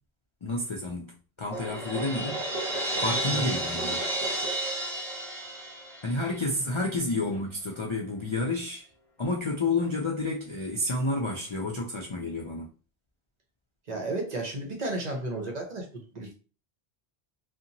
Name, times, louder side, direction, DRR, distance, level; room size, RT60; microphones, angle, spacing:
voice 1, 0.4-2.5 3.0-4.0 6.0-8.9 9.2-12.7, left 2 dB, 50° left, 0.3 m, -30 dB
Crash cymbal, 1.5-6.4, right 1 dB, 25° right, 1.1 m, -31 dB
voice 2, 13.9-16.4, right 2 dB, 50° right, 0.6 m, -33 dB
2.7 x 2.1 x 2.6 m
omnidirectional pair, 1.0 m